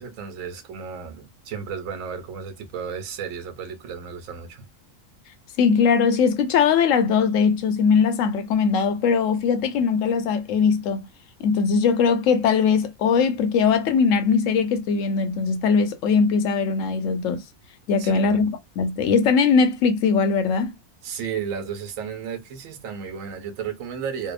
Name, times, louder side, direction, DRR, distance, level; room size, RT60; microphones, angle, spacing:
voice 1, 0.0-4.6 18.0-18.4 21.0-24.3, right 7 dB, 75° right, 1.0 m, -33 dB
voice 2, 5.6-11.1 11.4-17.4 17.9-20.7, left 5 dB, 70° left, 0.9 m, -20 dB
2.7 x 2.0 x 2.3 m
omnidirectional pair, 1.4 m